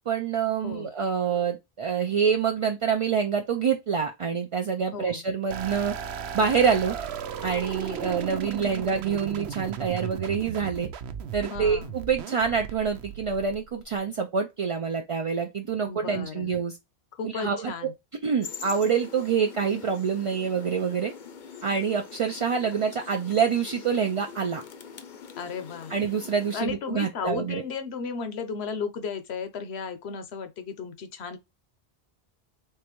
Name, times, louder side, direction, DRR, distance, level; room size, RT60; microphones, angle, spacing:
voice 1, 0.1-5.9 6.3-7.0 7.4-10.9 11.3-16.8 17.2-17.9 18.2-21.1 21.6-24.6 25.9-27.6, right 6 dB, 50° right, 0.4 m, -26 dB
voice 2, 4.9-5.2 11.5-11.9 15.9-16.5 17.2-17.9 25.4-25.9 26.5-31.4, left 5 dB, 85° left, 1.0 m, -34 dB
sound 1, 5.5-14.0, right 8 dB, 85° right, 0.9 m, -36 dB
sound 2, 18.4-26.6, left 6 dB, 55° left, 0.7 m, -44 dB
3.8 x 3.2 x 3.0 m
omnidirectional pair, 1.1 m